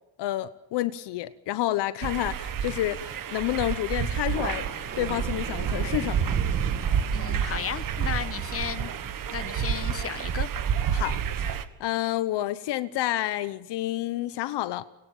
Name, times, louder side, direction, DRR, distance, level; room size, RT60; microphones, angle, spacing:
voice 1, 0.2-4.7 5.0-6.3 10.9-14.8, left 14 dB, 65° left, 1.0 m, -29 dB
sound 1, 2.0-11.6, right 8 dB, 45° right, 1.5 m, -29 dB
Thunder, 4.2-11.3, right 5 dB, 30° right, 2.2 m, -40 dB
voice 2, 7.1-8.9 9.3-10.5, left 8 dB, 30° left, 1.2 m, -34 dB
24.5 x 21.0 x 7.2 m
cardioid pair, 125°, 44 cm